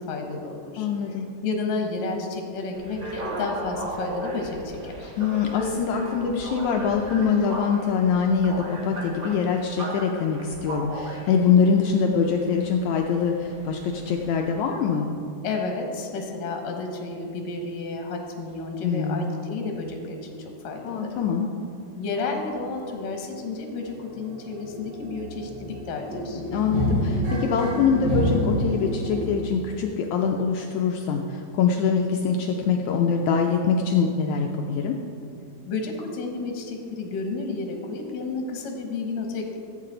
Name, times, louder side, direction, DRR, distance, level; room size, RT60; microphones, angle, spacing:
voice 1, 0.0-0.9 1.4-5.1 15.4-20.4 20.6-21.1 22.0-26.4 35.7-39.6, left 3 dB, 65° left, 2 dB, 2.0 m, -31 dB
voice 2, 0.8-1.3 5.2-15.1 18.8-19.3 20.8-21.5 26.5-34.9, left 6 dB, 80° left, 2 dB, 1.7 m, -24 dB
sound 1, 2.7-14.6, right 1 dB, 70° right, 0.8 m, -36 dB
sound 2, 22.5-22.6 22.9-23.0 23.3-29.3, equal, 35° right, 3.4 m, -28 dB
14.0 x 8.5 x 3.9 m, 2.6 s
omnidirectional pair, 3.9 m